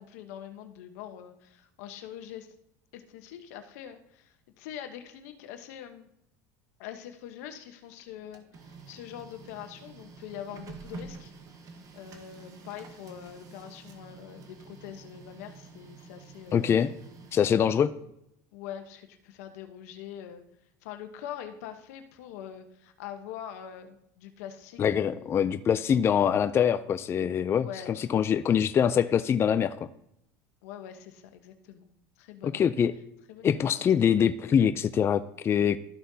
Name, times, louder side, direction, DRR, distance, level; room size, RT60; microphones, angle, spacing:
voice 1, 0.0-2.5 2.9-6.1 6.8-11.3 11.9-16.7 18.5-20.4 20.8-25.5 25.9-26.0 27.5-28.1 30.6-31.9 32.2-32.8 33.3-33.8, left 10 dB, 80° left, 7 dB, 1.0 m, -44 dB
Printer, 8.0-17.8, right 4 dB, 45° right, 1.3 m, -48 dB
voice 2, 16.5-16.9 17.3-17.9 24.8-29.7 32.4-32.9 33.4-35.8, left 8 dB, 30° left, 11 dB, 0.4 m, -24 dB
13.0 x 5.8 x 2.8 m, 0.78 s
supercardioid pair, 105°, 8 cm